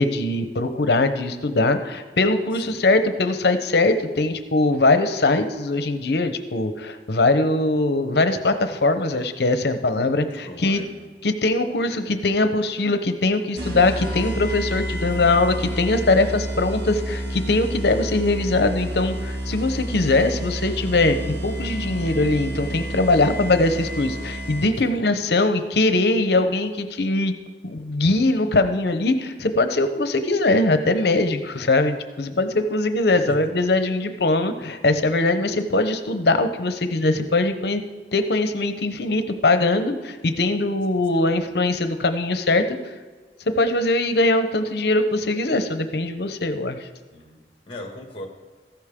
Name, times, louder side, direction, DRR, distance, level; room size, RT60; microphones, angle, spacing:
voice 1, 0.0-10.8 11.2-27.3 27.6-37.8 38.1-42.8 43.6-46.9, left 2 dB, 70° left, 9 dB, 0.8 m, -21 dB
voice 2, 2.5-2.9 10.2-11.1 24.9-25.1 33.3-33.5 41.3-41.5 47.1-48.3, left 1 dB, 30° left, 2 dB, 1.9 m, -40 dB
sound 1, 13.6-24.9, right 1 dB, 75° right, 2.0 m, -30 dB
14.5 x 11.5 x 3.7 m, 1.4 s
head